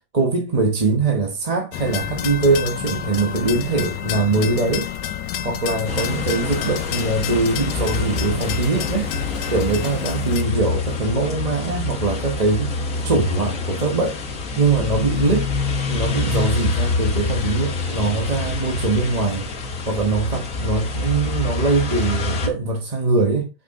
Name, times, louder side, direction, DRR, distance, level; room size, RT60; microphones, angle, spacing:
voice 1, 0.1-4.9 5.4-9.1 9.5-12.7 13.0-14.2 14.6-15.5 15.9-19.5 19.8-23.5, right 3 dB, 25° right, 1.0 m, -22 dB
sound 1, 1.7-10.4, left 10 dB, 75° left, 1.3 m, -29 dB
sound 2, 5.9-22.5, left 3 dB, 45° left, 1.6 m, -26 dB
7.5 x 5.8 x 3.7 m
omnidirectional pair, 2.1 m